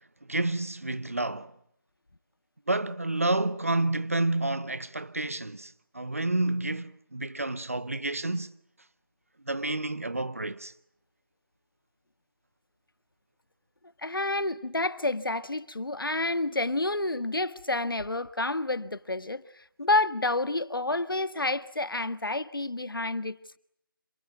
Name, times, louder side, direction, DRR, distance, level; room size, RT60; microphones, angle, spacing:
voice 1, 0.3-1.5 2.7-8.5 9.5-10.7, right 2 dB, 40° right, 1.0 m, -29 dB
voice 2, 14.0-19.4 19.8-23.6, left 2 dB, 80° left, 1.6 m, -29 dB
27.5 x 21.0 x 9.2 m
figure-of-eight pair, 180°, 11 cm